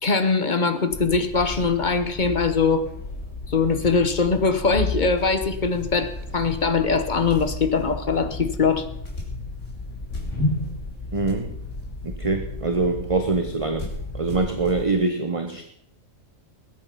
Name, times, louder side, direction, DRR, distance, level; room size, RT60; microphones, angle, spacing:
voice 1, 0.0-2.9 3.5-8.9, left 4 dB, 40° left, 10 dB, 1.1 m, -22 dB
sound 1, 0.9-14.9, left 2 dB, 70° left, 3.8 m, -33 dB
voice 2, 11.1-11.6 12.0-13.9 14.1-15.6, right 3 dB, 30° right, 6 dB, 1.0 m, -24 dB
20.5 x 9.0 x 5.5 m, 0.72 s
omnidirectional pair, 1.3 m